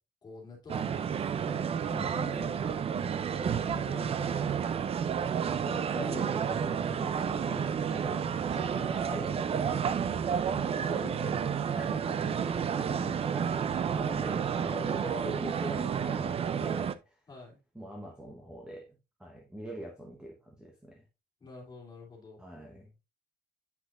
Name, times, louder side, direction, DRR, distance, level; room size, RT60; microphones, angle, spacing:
voice 1, 0.2-1.7 2.1-4.5 8.7-9.0 10.5-11.8 14.2-14.6 17.3-17.6 21.4-22.4, left 2 dB, 25° left, 2.8 m, -48 dB
sound 1, 0.7-16.9, right 7 dB, 35° right, 0.4 m, -31 dB
voice 2, 1.9-2.4 5.6-9.8 10.2-10.7 11.8-17.2 17.7-18.9 19.2-21.0 22.4-22.9, right 1 dB, 5° right, 0.9 m, -42 dB
8.1 x 6.0 x 2.4 m
cardioid pair, 180°, 17 cm